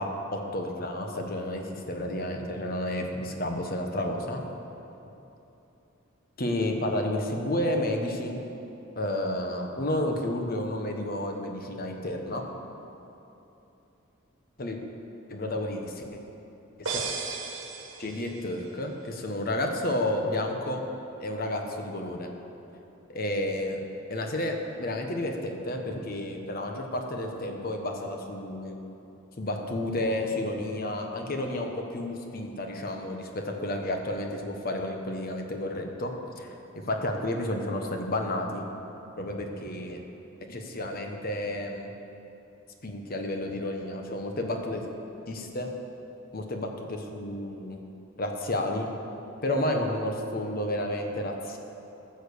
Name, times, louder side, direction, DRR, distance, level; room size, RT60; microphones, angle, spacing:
voice 1, 0.0-4.4 6.4-8.4 9.0-12.4 14.6-14.8 15.3-16.2 16.8-17.0 18.0-20.8 21.2-22.3 23.1-23.8 24.1-28.8 29.4-36.5 36.9-38.7 39.2-40.0 40.5-41.9 42.8-44.9 45.3-45.7 46.3-47.8 48.2-48.9 49.4-51.6, left 1 dB, 45° left, 3 dB, 1.2 m, -31 dB
sound 1, 16.9-18.7, right 4 dB, 65° right, 1.4 m, -35 dB
14.5 x 6.8 x 6.8 m, 2.9 s
head